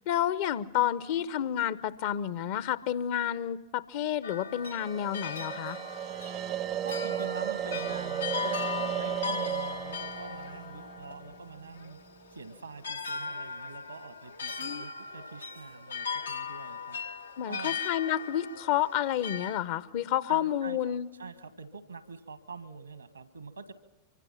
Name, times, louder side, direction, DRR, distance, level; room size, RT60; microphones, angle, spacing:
voice 1, 0.0-5.8 14.6-14.9 17.4-21.1, left 11 dB, 50° left, 17 dB, 0.8 m, -30 dB
sound 1, 4.2-19.6, left 6 dB, 75° left, 0.8 m, -38 dB
sound 2, 4.7-11.9, right 11 dB, 35° right, 0.7 m, -35 dB
voice 2, 6.8-12.0 12.3-17.0 17.4-17.8 20.3-23.7, right 4 dB, 80° right, 12 dB, 1.5 m, -45 dB
24.5 x 24.5 x 5.7 m, 1.0 s
figure-of-eight pair, 90°, 0 cm